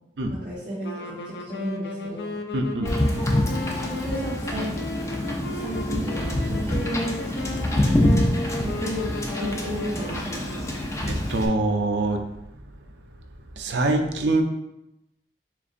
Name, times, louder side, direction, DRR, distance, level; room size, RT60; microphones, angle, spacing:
voice 1, 0.3-2.4 3.6-4.7 5.5-7.1 8.6-9.1 9.4-10.7, equal, 50° right, -13 dB, 1.6 m, -33 dB
sound 1, 0.8-11.2, left 2 dB, 70° left, 0.5 m, -35 dB
voice 2, 2.5-2.9 11.1-12.3 13.6-14.4, right 2 dB, 80° right, 4 dB, 0.5 m, -24 dB
Wind / Boat Water vehicle, 2.8-11.5, left 1 dB, 15° left, 0.6 m, -26 dB
7.0 x 2.5 x 2.5 m, 0.87 s
head